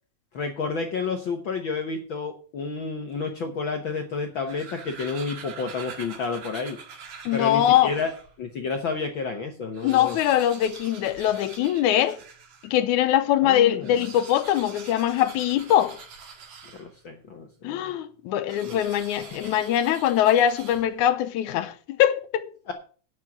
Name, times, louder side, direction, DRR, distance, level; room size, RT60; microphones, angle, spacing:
voice 1, 0.3-6.8 7.3-8.1 8.4-10.2 13.4-14.1 16.8-17.9 18.6-18.8 19.2-19.6 22.7-22.8, left 4 dB, 60° left, 1.2 m, -30 dB
sound 1, 4.3-8.4 8.9-9.0 9.2-9.3 9.6-12.8 13.7-17.2 18.5-21.2, right 5 dB, 65° right, 3.0 m, -44 dB
voice 2, 7.3-8.0 9.8-12.2 12.6-16.0 17.6-22.5, left 11 dB, 80° left, 2.1 m, -22 dB
9.7 x 7.3 x 6.1 m
omnidirectional pair, 3.6 m